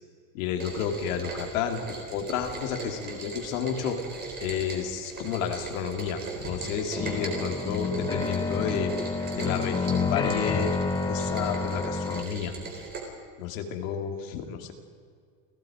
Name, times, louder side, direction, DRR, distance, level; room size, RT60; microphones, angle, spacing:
voice 1, 0.3-4.0 4.4-8.9 9.3-10.7 11.0-12.5 13.4-14.7, left 7 dB, 70° left, 4 dB, 3.0 m, -31 dB
Rain, 0.6-13.0, right 4 dB, 25° right, 4.1 m, -39 dB
sound 1, 6.4-12.2, left 4 dB, 10° left, 1.0 m, -29 dB
30.0 x 17.0 x 5.1 m, 2.1 s
supercardioid pair, 165°, 42 cm